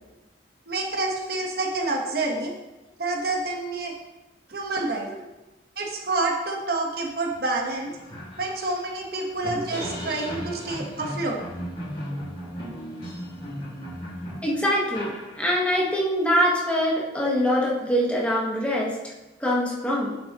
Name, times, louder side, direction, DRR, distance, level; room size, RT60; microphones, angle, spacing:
voice 1, 0.7-2.6 3.0-3.9 4.5-5.1 5.8-7.9 8.4-11.4, right 2 dB, 60° right, 0 dB, 1.2 m, -28 dB
sound 1, 7.3-7.4 7.7-15.8, equal, 30° left, 2.7 m, -36 dB
voice 2, 9.1-9.4 14.4-19.1 19.4-20.2, equal, 5° left, -4 dB, 1.3 m, -24 dB
8.9 x 7.1 x 3.0 m, 1.0 s
head